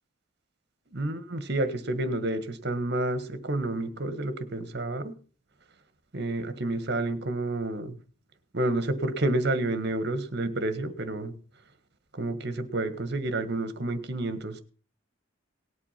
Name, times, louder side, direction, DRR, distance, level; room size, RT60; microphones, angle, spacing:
voice 1, 0.9-5.1 6.1-7.9 8.5-11.3 12.1-14.6, right 2 dB, 55° right, 11 dB, 1.6 m, -29 dB
18.5 x 8.3 x 5.9 m, 0.40 s
head